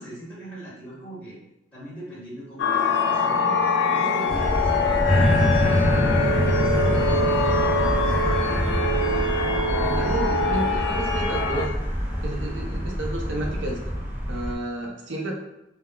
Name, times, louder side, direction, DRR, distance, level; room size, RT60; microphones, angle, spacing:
voice 1, 0.0-1.4 1.7-8.7, right 1 dB, 5° left, -10 dB, 1.0 m, -40 dB
sound 1, 2.6-11.7, left 3 dB, 80° left, 0.4 m, -23 dB
sound 2, 4.3-14.5, equal, 10° right, 0.5 m, -28 dB
sound 3, 5.1-12.4 13.0-13.1, equal, 35° left, 1.0 m, -26 dB
voice 2, 9.8-11.7 12.2-13.8 14.3-15.3, right 1 dB, 85° right, 0 dB, 0.6 m, -31 dB
2.3 x 2.2 x 3.6 m, 0.91 s
head